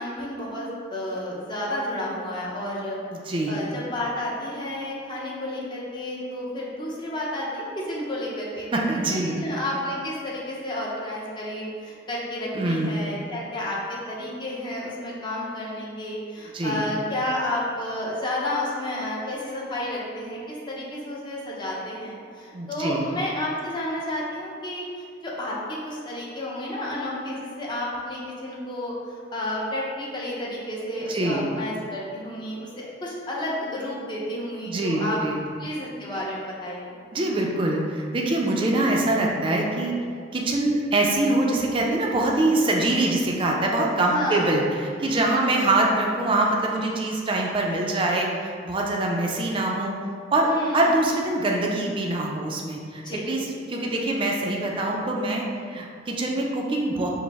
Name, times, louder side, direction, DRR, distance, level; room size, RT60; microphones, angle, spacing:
voice 1, 0.0-3.0 3.5-8.7 9.1-35.2 35.6-36.9 44.0-44.6 45.3-45.6 50.4-50.8 53.0-53.2, left 1 dB, 25° left, -5 dB, 0.7 m, -31 dB
voice 2, 3.1-3.7 8.7-9.4 12.5-12.9 16.5-16.8 22.5-23.0 31.1-31.5 34.7-35.4 37.1-39.9 40.3-49.9 50.3-57.1, right 2 dB, 30° right, -1 dB, 0.4 m, -24 dB
5.0 x 2.0 x 3.4 m, 2.2 s
head